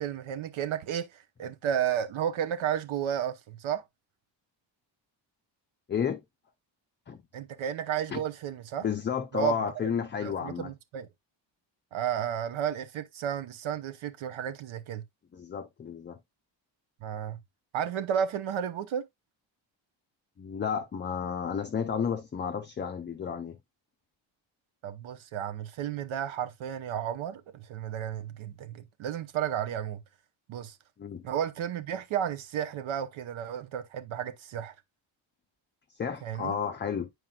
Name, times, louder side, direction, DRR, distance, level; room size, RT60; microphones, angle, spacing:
voice 1, 0.0-3.8 7.3-8.8 9.3-9.9 10.2-11.1 11.9-15.0 17.0-17.4 17.7-19.0 24.8-30.0 30.5-30.8 31.2-34.7 36.2-36.6, right 9 dB, 85° right, 0.9 m, -32 dB
voice 2, 5.9-6.2 7.1-7.2 8.1-8.2 8.8-10.7 15.3-16.2 20.4-23.6 31.0-31.2 35.9-37.1, left 7 dB, 25° left, 0.4 m, -32 dB
9.1 x 4.7 x 2.3 m
wide cardioid pair, 175°, 46 cm